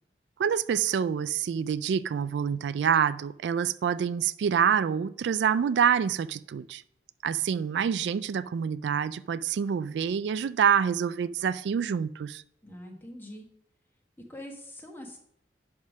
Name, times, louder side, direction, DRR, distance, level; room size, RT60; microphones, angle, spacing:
voice 1, 0.4-6.8 7.2-12.4, right 7 dB, 80° right, 0.3 m, -26 dB
voice 2, 12.6-13.4 14.3-15.2, left 1 dB, 10° left, 1.4 m, -43 dB
10.5 x 3.6 x 6.2 m
head